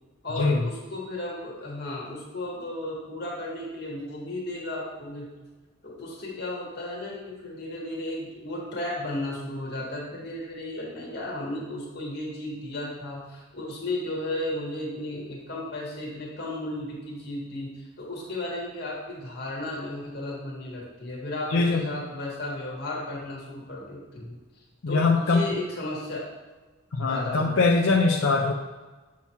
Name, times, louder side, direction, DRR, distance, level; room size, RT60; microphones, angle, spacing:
voice 1, 0.2-5.3 5.8-24.4 24.9-26.3 27.1-27.9, left 1 dB, 50° left, -3 dB, 1.7 m, -34 dB
voice 2, 21.5-21.9 24.8-25.5 26.9-28.5, left 3 dB, 75° left, 0 dB, 0.5 m, -22 dB
7.4 x 3.0 x 5.7 m, 1.2 s
head